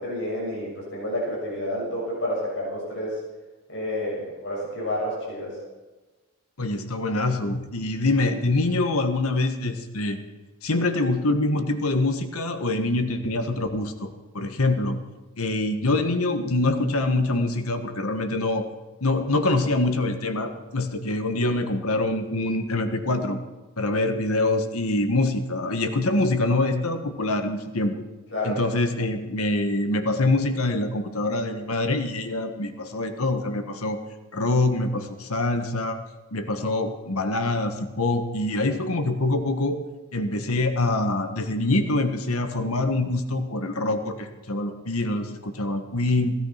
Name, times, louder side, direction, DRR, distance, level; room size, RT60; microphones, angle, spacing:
voice 1, 0.0-3.2 3.7-5.6 28.3-28.6, left 1 dB, 55° left, -4 dB, 6.9 m, -29 dB
voice 2, 6.6-10.2 10.6-15.0 15.4-18.7 19.0-23.4 23.8-27.9 28.4-34.0 34.3-36.0 36.3-39.8 40.1-46.3, left 2 dB, 85° left, 7 dB, 1.6 m, -25 dB
16.5 x 13.0 x 5.9 m, 1.2 s
head